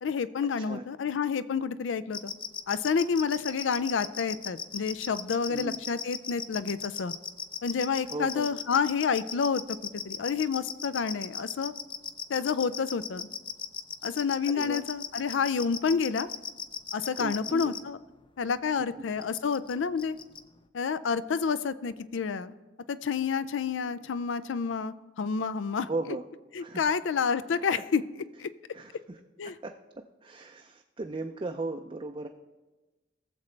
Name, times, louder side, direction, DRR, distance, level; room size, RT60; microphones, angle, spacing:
voice 1, 0.0-2.3 2.7-7.1 7.6-9.8 10.0-11.7 12.3-13.2 14.0-16.3 16.9-18.0 18.4-20.2 20.7-22.5 22.9-25.9 26.5-28.0 28.4-28.5 29.4-29.5, left 5 dB, 90° left, 15 dB, 0.4 m, -29 dB
sound 1, 2.1-17.8 19.2-19.7 20.0-20.4, left 7 dB, 25° left, 0.4 m, -36 dB
voice 2, 5.5-5.8 8.1-8.5 14.5-14.8 17.1-17.7 18.9-19.0 25.9-26.2 26.6-26.8 28.7-29.2 29.4-29.7 30.2-32.3, right 2 dB, 25° right, 3 dB, 0.4 m, -36 dB
18.5 x 7.4 x 3.3 m, 1.1 s
head